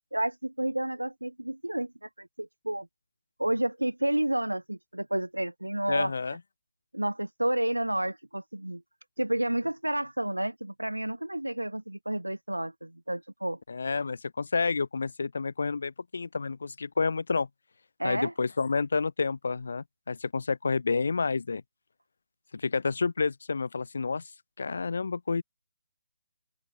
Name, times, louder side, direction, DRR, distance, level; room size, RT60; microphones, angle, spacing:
voice 1, 0.1-2.9 3.4-6.1 6.9-8.8 9.2-13.6 18.0-18.3, right 1 dB, 85° right, 1.9 m, -30 dB
voice 2, 5.9-6.4 13.7-17.5 18.0-21.6 22.5-24.2 24.6-25.4, left 4 dB, 60° left, 1.2 m, -29 dB
figure-of-eight pair, 145°, 0 cm